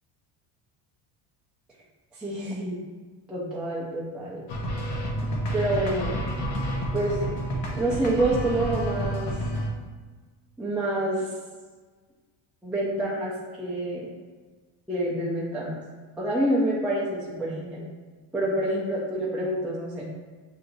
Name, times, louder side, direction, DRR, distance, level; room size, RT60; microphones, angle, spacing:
voice 1, 2.2-2.8 3.3-4.4 5.5-6.2 6.9-7.4 7.8-9.3 10.6-11.3 12.6-14.1 14.9-15.8 16.2-17.8 18.3-20.1, right 1 dB, ahead, -7 dB, 0.4 m, -27 dB
sound 1, 4.5-9.7, equal, 50° left, 0.9 m, -29 dB
6.4 x 2.8 x 2.6 m, 1.4 s
cardioid pair, 150°, 48 cm